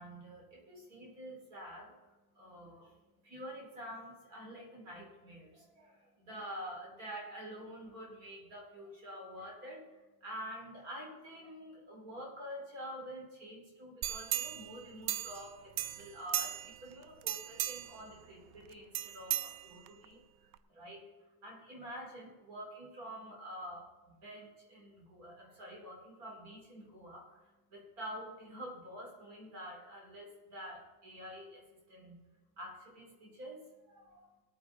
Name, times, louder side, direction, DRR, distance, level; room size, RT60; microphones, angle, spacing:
voice 1, 0.0-32.2 32.6-34.4, equal, 40° right, -1 dB, 3.3 m, -48 dB
sound 1, 14.0-15.5 15.8-16.8 17.2-18.0 18.9-20.1 20.5-20.6, right 13 dB, 75° right, 1.3 m, -36 dB
20.0 x 8.9 x 3.9 m, 1.2 s
omnidirectional pair, 2.4 m